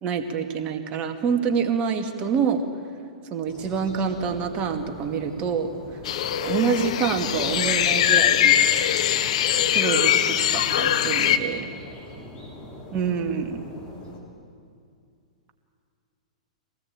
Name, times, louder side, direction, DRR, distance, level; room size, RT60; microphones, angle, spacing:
voice 1, 0.0-2.6 3.3-5.7 6.4-8.5 9.7-11.7 12.9-13.6, right 6 dB, 30° right, 5 dB, 2.2 m, -26 dB
sound 1, 3.5-14.2, left 1 dB, 25° left, 5.7 m, -42 dB
sound 2, 6.1-11.4, left 10 dB, 60° left, 1.0 m, -21 dB
24.5 x 18.5 x 8.9 m, 2.3 s
hypercardioid pair, 115°, 4 cm